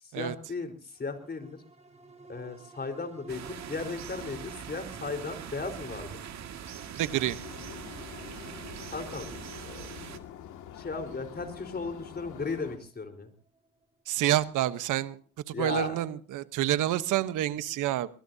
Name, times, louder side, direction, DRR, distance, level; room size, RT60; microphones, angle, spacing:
voice 1, 0.2-1.6 2.3-6.1 8.9-9.3 9.6-9.9 10.7-13.3 15.5-16.1, left 4 dB, 30° left, 7 dB, 4.5 m, -36 dB
sound 1, 0.9-15.6 16.0-16.1, right 3 dB, 20° right, 4.9 m, -55 dB
sound 2, 3.3-10.2, right 8 dB, 65° right, 2.2 m, -42 dB
voice 2, 7.0-7.4 14.1-15.2 15.5-18.1, right 13 dB, 85° right, 13 dB, 1.1 m, -28 dB
sound 3, 7.1-12.8, left 10 dB, 90° left, 2.1 m, -46 dB
23.5 x 21.5 x 2.8 m, 0.38 s
cardioid pair, 90°, 30 cm